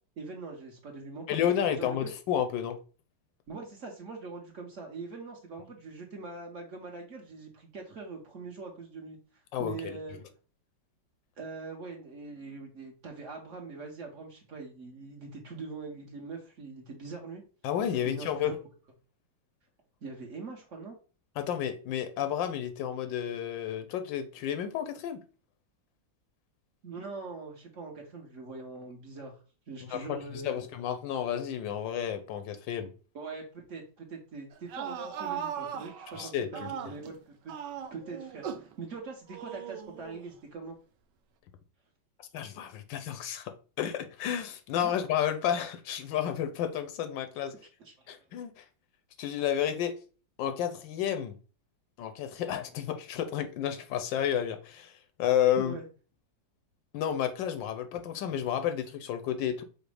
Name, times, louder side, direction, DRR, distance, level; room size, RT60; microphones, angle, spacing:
voice 1, 0.2-2.1 3.5-10.2 11.4-17.4 18.0-18.5 20.0-21.0 26.8-29.4 29.7-30.7 33.1-37.6 37.9-40.8 44.8-44.9 47.5-47.9 55.6-55.9, right 4 dB, 50° right, 1.0 m, -43 dB
voice 2, 1.3-2.8 9.5-10.0 17.6-18.5 21.4-25.2 29.8-32.9 36.2-36.7 42.3-43.5 43.8-47.5 48.1-48.6 49.2-49.9 50.4-51.4 52.0-55.7 56.9-59.6, left 9 dB, 85° left, 1.4 m, -31 dB
sound 1, 34.5-37.1 37.5-38.7 39.3-40.3, right 8 dB, 75° right, 1.2 m, -38 dB
5.0 x 2.1 x 4.8 m
omnidirectional pair, 2.0 m